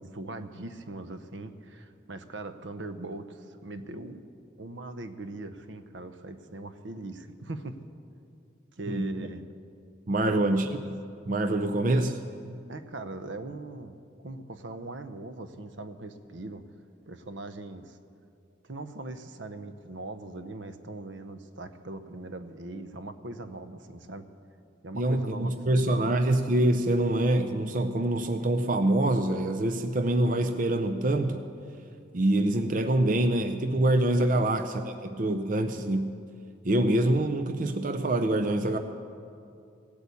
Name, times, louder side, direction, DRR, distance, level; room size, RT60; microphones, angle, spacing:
voice 1, 0.0-4.2 4.6-7.8 8.7-9.4 10.2-10.6 11.6-11.7 12.7-16.6 17.1-18.0 18.6-24.3 24.8-26.2 34.3-34.6, right 2 dB, 75° right, 10 dB, 0.8 m, -40 dB
voice 2, 8.9-9.3 10.1-11.0 11.3-12.2 24.9-31.5 32.1-36.1 36.6-38.8, right 1 dB, 45° right, 7 dB, 0.5 m, -25 dB
17.0 x 8.3 x 8.3 m, 2.5 s
head